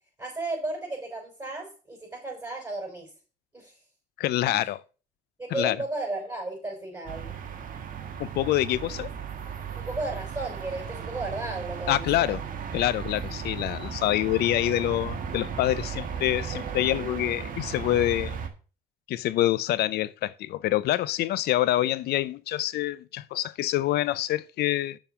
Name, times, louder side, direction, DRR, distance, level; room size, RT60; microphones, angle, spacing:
voice 1, 0.2-3.1 3.5-3.8 4.4-4.7 5.4-7.3 9.7-12.3, right 2 dB, 15° right, 5.3 m, -34 dB
voice 2, 4.2-4.8 5.5-5.8 8.2-9.1 11.9-12.4 12.7-18.4 19.1-25.0, left 14 dB, 70° left, 0.6 m, -26 dB
sound 1, 7.1-18.5, right 7 dB, 55° right, 1.7 m, -35 dB
7.0 x 5.4 x 7.0 m
cardioid pair, 110°, 17 cm